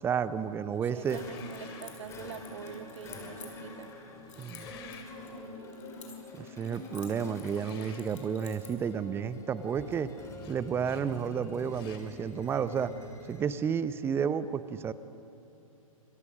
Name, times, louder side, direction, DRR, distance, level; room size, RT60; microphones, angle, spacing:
voice 1, 0.0-1.2 4.4-4.7 6.3-10.1 10.5-12.9 13.3-14.9, right 7 dB, 15° right, 14 dB, 0.8 m, -31 dB
voice 2, 0.6-3.9, right 9 dB, 55° right, 13 dB, 1.0 m, -45 dB
sound 1, 0.9-1.9 4.2-5.1 7.5-8.1 10.4-10.6 10.8-11.1 11.7-12.1, left 8 dB, 45° left, 3.1 m, -52 dB
sound 2, 1.0-13.6, left 2 dB, 15° left, 3.4 m, -46 dB
Keys jangling, 1.2-3.9 4.3-6.4 6.6-8.9, left 7 dB, 60° left, 5.3 m, -52 dB
29.0 x 26.0 x 6.3 m, 2.9 s
figure-of-eight pair, 120°, 18 cm